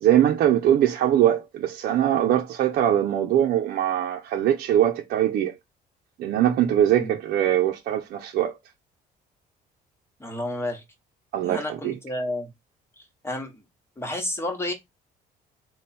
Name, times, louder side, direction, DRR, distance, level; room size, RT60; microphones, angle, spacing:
voice 1, 0.0-5.5 6.2-8.6 11.3-11.9, right 11 dB, 65° right, 0.6 m, -22 dB
voice 2, 10.2-10.8 11.4-12.5 13.0-13.6 14.0-14.7, left 1 dB, 15° left, 1.2 m, -31 dB
3.4 x 2.3 x 4.2 m
cardioid pair, 110°, 17 cm